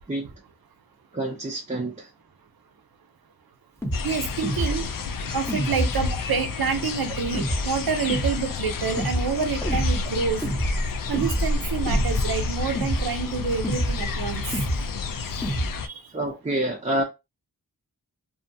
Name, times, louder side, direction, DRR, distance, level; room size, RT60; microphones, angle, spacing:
voice 1, 1.1-2.1 16.1-17.0, right 1 dB, 20° right, 0.5 m, -27 dB
sound 1, 3.8-4.0 4.4-4.8 5.5-6.2 7.3-7.7 8.1-8.4 9.0-9.3 9.6-10.0 10.4-10.9 11.1-11.6 11.9-12.3 12.7-13.1 13.6-14.0 14.5-14.9 15.4-15.7, right 1 dB, 5° left, 0.8 m, -26 dB
sound 2, 3.9-15.9, left 4 dB, 60° left, 0.5 m, -30 dB
voice 2, 4.0-4.9 5.3-10.4 11.1-14.4 15.8-16.0, right 6 dB, 70° right, 0.7 m, -27 dB
2.7 x 2.3 x 2.6 m
wide cardioid pair, 50°, 37 cm